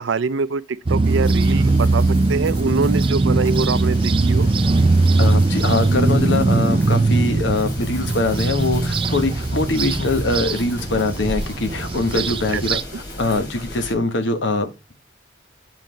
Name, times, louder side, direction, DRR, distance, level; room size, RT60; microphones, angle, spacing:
voice 1, 0.0-4.5 12.1-12.6, right 4 dB, 85° right, 0.5 m, -25 dB
sound 1, 0.9-12.8, right 3 dB, 30° right, 0.4 m, -20 dB
sound 2, 1.0-13.9, left 1 dB, 60° left, 2.8 m, -35 dB
Writing, 1.2-13.5, equal, 15° left, 1.7 m, -45 dB
voice 2, 5.2-12.8 13.2-14.9, left 2 dB, 75° left, 1.2 m, -22 dB
7.4 x 4.0 x 5.1 m
head